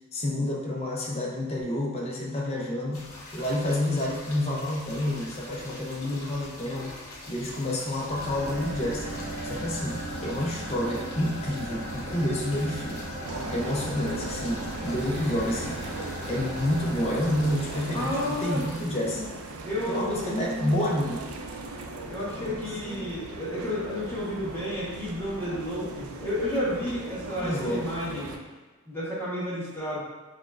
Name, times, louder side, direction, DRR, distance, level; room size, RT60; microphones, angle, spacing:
voice 1, 0.1-7.0 7.3-9.1 9.4-13.1 13.5-15.8 16.3-19.3 19.9-21.3 22.3-23.1 27.3-28.2, left 1 dB, 30° left, -2 dB, 0.5 m, -29 dB
sound 1, 2.9-18.8, left 2 dB, 80° left, 0.8 m, -44 dB
sound 2, 8.0-18.5, right 1 dB, 50° right, 0.7 m, -37 dB
sound 3, 13.2-28.4, right 2 dB, 80° right, 0.4 m, -39 dB
voice 2, 17.9-18.6 19.6-20.4 22.1-28.3 28.9-30.0, left 1 dB, 10° left, -8 dB, 1.0 m, -31 dB
6.1 x 2.1 x 2.4 m, 1.2 s
head